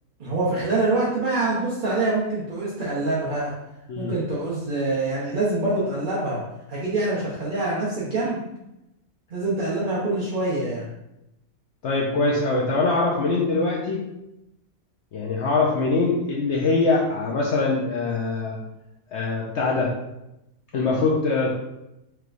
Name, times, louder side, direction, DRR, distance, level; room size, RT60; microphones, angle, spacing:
voice 1, 0.2-3.5 4.0-6.4 6.7-8.4 9.3-10.8, right 2 dB, 45° right, -7 dB, 0.7 m, -25 dB
voice 2, 11.8-14.0 15.1-18.6 19.1-19.9 20.7-21.5, left 3 dB, 60° left, -4 dB, 0.8 m, -23 dB
4.6 x 3.1 x 2.5 m, 0.90 s
omnidirectional pair, 1.6 m